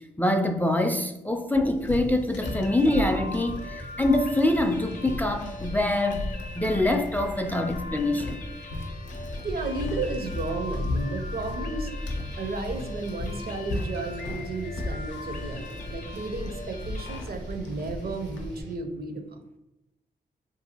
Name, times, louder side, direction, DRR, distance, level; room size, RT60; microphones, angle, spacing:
voice 1, 0.2-8.4, left 1 dB, 10° left, 0.3 m, -25 dB
sound 1, 1.7-18.6, left 2 dB, 90° left, 0.5 m, -36 dB
sound 2, 2.4-17.2, left 3 dB, 45° left, 0.6 m, -42 dB
sound 3, 2.4-18.7, equal, 80° right, 0.9 m, -43 dB
voice 2, 9.4-11.9 12.4-19.4, right 3 dB, 55° right, 0.5 m, -33 dB
2.6 x 2.4 x 2.8 m
supercardioid pair, 40°, 18 cm